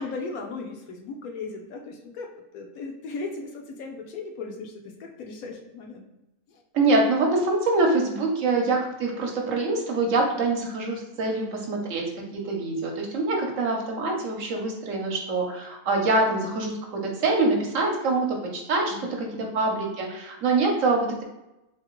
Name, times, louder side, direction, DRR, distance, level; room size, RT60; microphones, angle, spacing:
voice 1, 0.0-2.3 2.5-6.1 6.5-6.6 11.2-11.9 18.9-19.6, left 4 dB, 75° left, 2 dB, 1.1 m, -37 dB
voice 2, 6.7-19.3 19.5-21.2, right 3 dB, 65° right, 1 dB, 1.0 m, -25 dB
3.6 x 3.2 x 3.0 m, 0.94 s
omnidirectional pair, 1.6 m